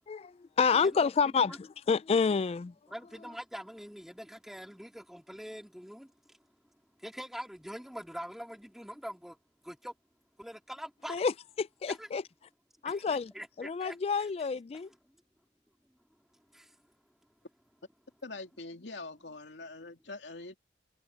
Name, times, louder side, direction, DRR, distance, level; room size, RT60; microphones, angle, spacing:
voice 1, 0.1-2.7 11.1-12.2 12.8-13.3 13.6-14.9, left 5 dB, 35° left, 0.3 m, -29 dB
voice 2, 0.8-1.6 2.9-6.4 7.0-9.4 9.6-9.9 10.4-11.2 11.9-12.1 12.9-14.3 16.5-16.8, equal, ahead, 2.0 m, -44 dB
voice 3, 18.2-20.6, left 3 dB, 85° left, 2.9 m, -44 dB
head